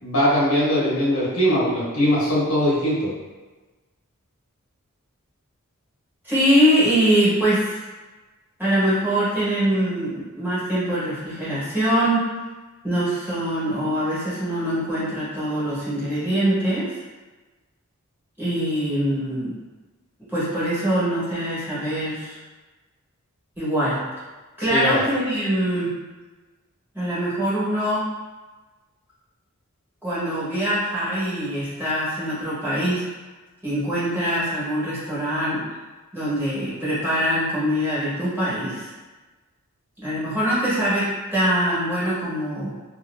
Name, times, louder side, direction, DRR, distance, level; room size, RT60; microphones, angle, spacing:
voice 1, 0.0-3.1 24.7-25.0, equal, 80° left, -7 dB, 1.2 m, -21 dB
voice 2, 6.2-7.8 8.6-12.3 12.8-17.0 18.4-19.5 20.3-22.4 23.6-24.0 24.6-25.9 26.9-28.1 30.0-33.0 33.6-35.6 36.1-38.9 40.0-42.7, equal, 10° right, -12 dB, 1.3 m, -23 dB
2.7 x 2.7 x 2.5 m, 1.2 s
head